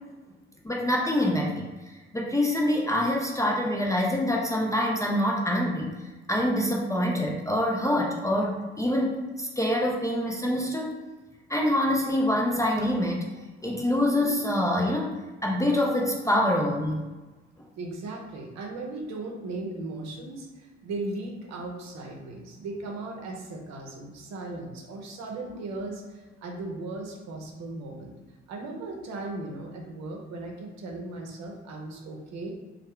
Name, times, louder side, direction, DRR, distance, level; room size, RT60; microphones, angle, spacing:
voice 1, 0.6-1.7 2.1-6.0 6.3-10.9 11.5-13.3 13.6-15.1 15.4-17.0, left 1 dB, 10° left, -2 dB, 0.5 m, -25 dB
voice 2, 17.8-28.1 28.5-32.5, right 2 dB, 55° right, 0 dB, 0.8 m, -37 dB
3.1 x 2.3 x 3.5 m, 1.2 s
figure-of-eight pair, 50°, 33 cm